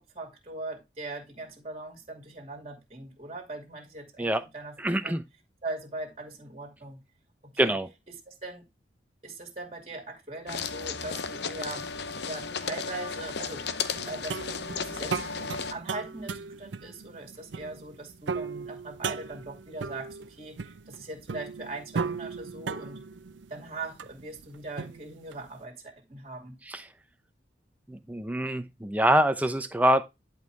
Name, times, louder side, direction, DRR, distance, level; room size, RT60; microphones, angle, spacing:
voice 1, 0.0-5.2 5.6-7.0 7.4-7.8 8.3-8.7 9.2-11.9 12.2-13.6 14.1-14.4 14.7-23.0 23.5-26.6, right 2 dB, 35° right, 2.5 m, -40 dB
voice 2, 4.8-5.2 7.6-7.9 26.7-26.8 27.9-30.0, right 1 dB, 10° right, 0.7 m, -25 dB
sound 1, 10.5-15.7, left 5 dB, 65° left, 0.7 m, -34 dB
sound 2, 13.9-25.5, right 5 dB, 90° right, 0.5 m, -37 dB
11.0 x 4.7 x 3.4 m
head